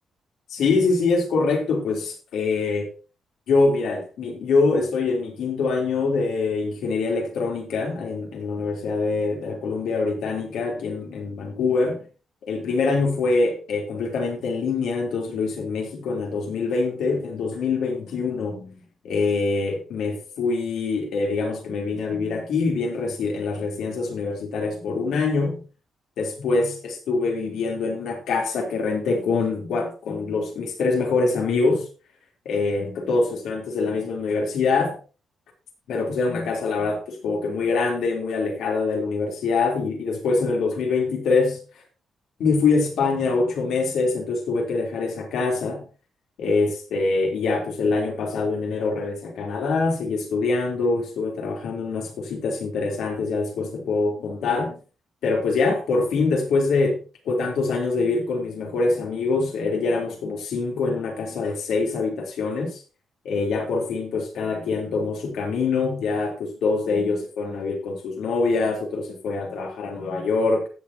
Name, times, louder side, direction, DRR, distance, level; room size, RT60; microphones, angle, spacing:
voice 1, 0.5-2.9 3.5-12.0 12.4-18.8 19.0-25.6 26.2-31.8 32.5-35.0 35.9-41.6 42.4-45.9 46.4-54.8 55.2-57.0 57.3-62.8 63.3-70.7, left 4 dB, 80° left, 3.6 m, -24 dB
16.5 x 7.1 x 2.9 m
wide cardioid pair, 160°, 0 cm